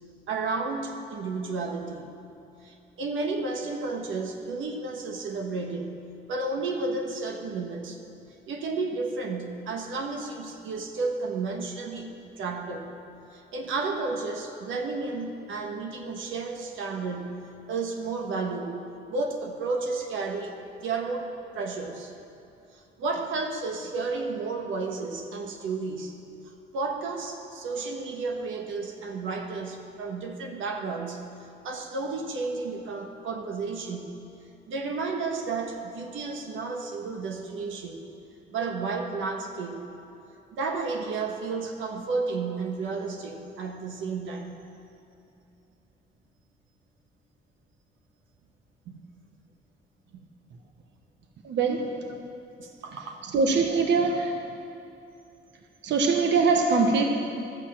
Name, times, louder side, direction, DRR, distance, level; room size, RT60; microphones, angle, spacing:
voice 1, 0.3-2.2 2.6-6.0 6.3-8.0 8.5-12.9 13.3-18.8 19.1-22.1 22.7-26.1 26.7-31.3 31.6-34.2 34.7-38.0 38.5-39.8 40.5-44.6 48.9-49.1 52.6-53.2, right 3 dB, 80° right, 3 dB, 1.3 m, -32 dB
voice 2, 51.4-52.0 53.3-54.4 55.8-57.0, right 4 dB, 65° right, 3 dB, 1.2 m, -22 dB
12.5 x 8.2 x 7.4 m, 2.7 s
cardioid pair, 90°, 20 cm